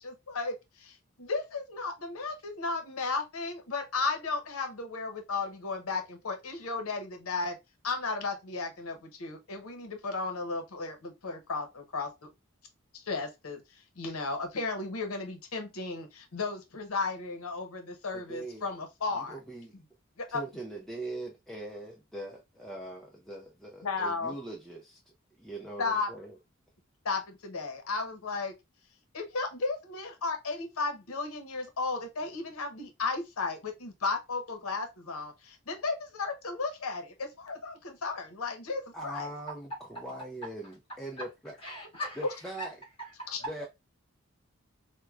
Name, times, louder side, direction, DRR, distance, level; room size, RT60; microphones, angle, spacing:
voice 1, 0.0-7.6 7.8-12.3 12.9-19.4 20.2-20.4 23.8-24.3 25.8-26.1 27.0-28.5 29.1-39.3 42.2-42.3 43.3-43.4, left 3 dB, 85° left, 0.8 m, -34 dB
voice 2, 18.1-18.7 19.1-19.8 20.3-25.0 25.4-26.4 38.9-41.6 42.2-42.8 43.5-43.7, right 1 dB, ahead, 0.4 m, -41 dB
voice 3, 41.6-42.2 42.6-42.7 43.0-43.3, equal, 25° left, 1.5 m, -39 dB
4.4 x 2.1 x 2.3 m
head